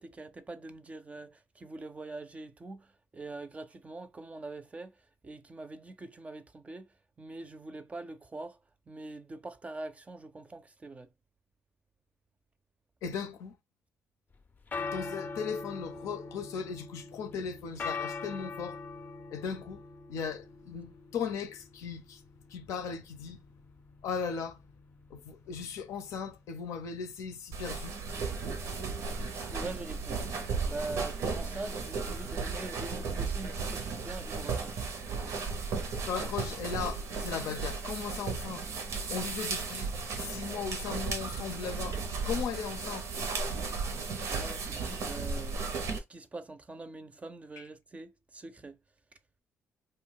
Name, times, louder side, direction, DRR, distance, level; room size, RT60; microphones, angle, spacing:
voice 1, 0.0-5.0 5.2-6.9 7.2-8.6 8.9-11.1 29.5-30.3 30.6-34.8 35.2-35.6 44.3-45.8 46.1-48.8, right 2 dB, 25° right, 0.5 m, -43 dB
voice 2, 13.0-13.5 14.8-18.8 19.3-19.8 20.1-22.2 22.5-23.4 24.0-24.6 25.1-28.0 36.1-38.6 39.1-39.9 40.2-42.0 42.2-43.1, left 6 dB, 85° left, 0.6 m, -37 dB
sound 1, 14.3-33.4, left 4 dB, 35° left, 0.5 m, -44 dB
sound 2, 27.5-46.0, right 4 dB, 75° right, 0.7 m, -35 dB
2.5 x 2.2 x 3.7 m
cardioid pair, 75°, 5 cm